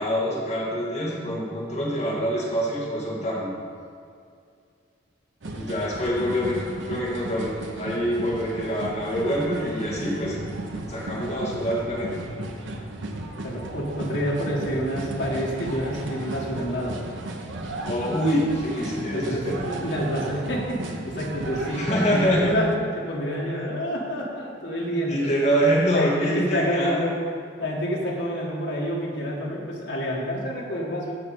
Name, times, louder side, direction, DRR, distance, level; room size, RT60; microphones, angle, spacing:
voice 1, 0.0-3.5 5.5-10.4 10.9-12.2 17.9-19.6 21.6-22.6 25.1-27.0, equal, 35° left, -6 dB, 2.3 m, -25 dB
sound 1, 5.4-22.8, right 2 dB, 75° right, 0.9 m, -35 dB
voice 2, 13.4-17.0 18.9-22.7 23.0-25.3 25.9-27.2 27.6-31.1, equal, 65° left, -4 dB, 1.9 m, -28 dB
15.0 x 5.2 x 4.3 m, 2.3 s
head